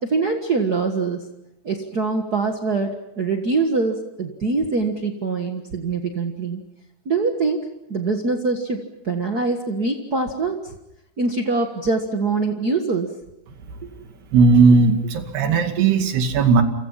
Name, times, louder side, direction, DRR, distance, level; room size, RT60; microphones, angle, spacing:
voice 1, 0.0-1.3 1.6-6.6 7.0-7.6 7.9-8.8 9.0-10.7 11.2-13.1 13.8-13.9, right 3 dB, 55° right, 3 dB, 1.1 m, -23 dB
voice 2, 14.3-16.6, right 4 dB, 85° right, 6 dB, 4.3 m, -16 dB
30.0 x 26.5 x 5.8 m, 0.86 s
omnidirectional pair, 4.5 m